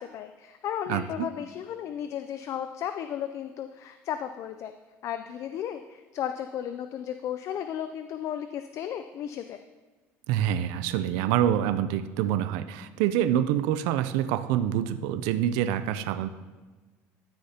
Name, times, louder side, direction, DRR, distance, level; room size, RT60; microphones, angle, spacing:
voice 1, 0.0-4.7 5.0-9.6, left 9 dB, 50° left, 9 dB, 0.4 m, -34 dB
voice 2, 0.9-1.3 10.3-16.3, right 10 dB, 85° right, 12 dB, 0.4 m, -26 dB
13.0 x 6.5 x 2.8 m, 1.3 s
cardioid pair, 110°, 6 cm